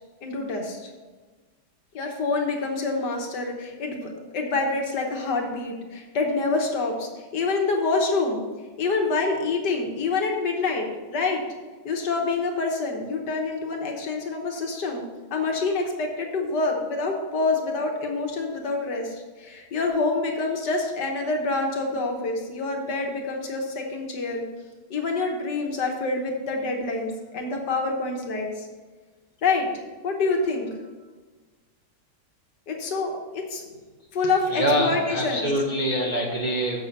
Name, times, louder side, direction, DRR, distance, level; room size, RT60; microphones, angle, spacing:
voice 1, 0.2-0.9 1.9-8.4 8.8-11.4 11.8-15.0 15.3-24.4 24.9-28.7 29.4-29.7 30.0-30.7 32.7-33.6 34.1-35.5, left 3 dB, 60° left, 2 dB, 1.6 m, -27 dB
voice 2, 34.5-36.8, equal, 35° right, -3 dB, 0.8 m, -24 dB
7.3 x 6.5 x 5.3 m, 1.3 s
omnidirectional pair, 2.2 m